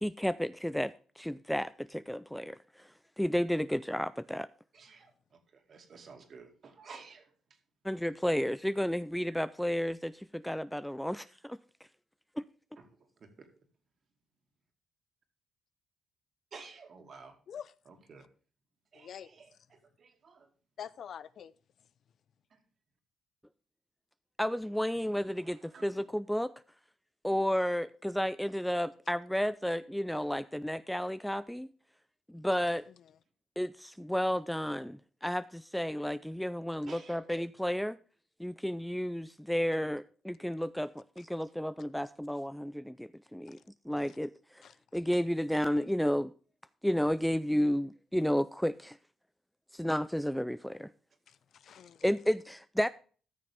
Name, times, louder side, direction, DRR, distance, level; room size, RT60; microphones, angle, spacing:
voice 1, 0.0-4.5 7.8-11.6 12.4-12.5 24.4-26.5 27.2-31.7 32.3-32.9 33.6-38.0 38.4-43.6 43.9-44.7 44.9-46.3 46.8-49.0 49.7-50.9 52.0-52.9, equal, 5° left, 0.3 m, -32 dB
voice 2, 4.7-7.3 12.8-13.5 16.5-17.3 17.9-18.3 18.9-20.5 22.5-22.6 25.3-26.0 36.9-37.3, right 5 dB, 50° right, 2.3 m, -53 dB
voice 3, 19.0-19.3 20.8-21.5 44.6-44.7 51.3-52.0, left 8 dB, 60° left, 0.5 m, -45 dB
14.0 x 6.5 x 3.5 m
cardioid pair, 90°, 0 cm